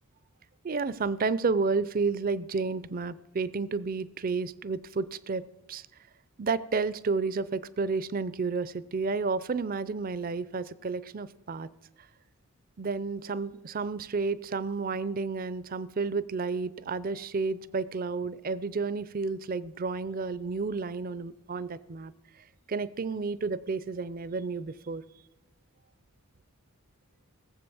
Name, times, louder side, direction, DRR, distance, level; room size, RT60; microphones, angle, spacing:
voice 1, 0.6-5.4 5.7-5.9 6.4-11.7 12.8-22.1 22.7-25.0, right 4 dB, 40° right, 18 dB, 0.5 m, -31 dB
18.0 x 7.6 x 6.9 m, 0.99 s
head